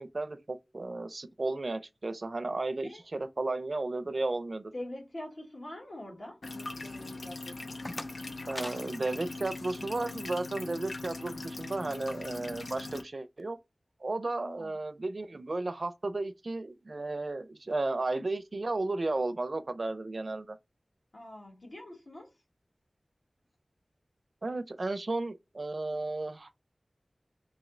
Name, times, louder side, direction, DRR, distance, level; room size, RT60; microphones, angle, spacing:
voice 1, 0.0-4.7 8.5-13.6 14.0-20.6 24.4-26.7, right 2 dB, 55° right, 0.5 m, -34 dB
voice 2, 4.7-7.8 14.4-14.8 21.1-22.4, left 1 dB, 60° left, 1.4 m, -45 dB
sound 1, 6.4-13.0, left 2 dB, 90° left, 0.5 m, -41 dB
sound 2, 7.4-10.2, left 1 dB, 20° left, 0.3 m, -45 dB
3.1 x 2.8 x 3.8 m
wide cardioid pair, 75°, 0 cm